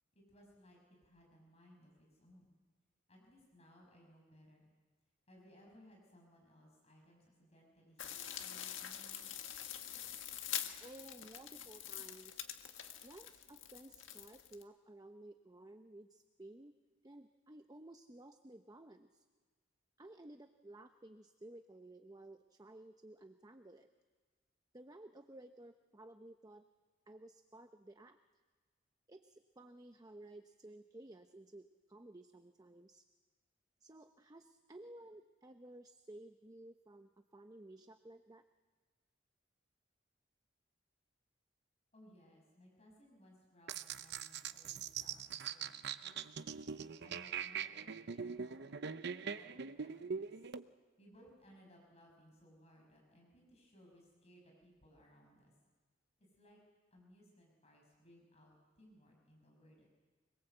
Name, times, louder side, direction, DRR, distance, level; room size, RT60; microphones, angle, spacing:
voice 1, 0.1-2.5 3.1-4.7 5.3-9.4 41.9-46.5 47.0-50.5 51.0-55.5 56.2-56.6 56.9-59.9, equal, 35° left, 0 dB, 5.9 m, -63 dB
sound 1, 8.0-14.6, left 10 dB, 85° left, 1.7 m, -45 dB
voice 2, 10.8-12.5 13.0-16.7 17.0-19.2 20.0-23.9 24.7-26.6 27.1-28.2 29.1-33.0 33.8-38.4, right 1 dB, 20° right, 7 dB, 0.8 m, -55 dB
sound 2, 43.7-50.6, right 6 dB, 60° right, 0.8 m, -42 dB
25.0 x 22.0 x 8.0 m, 1.4 s
head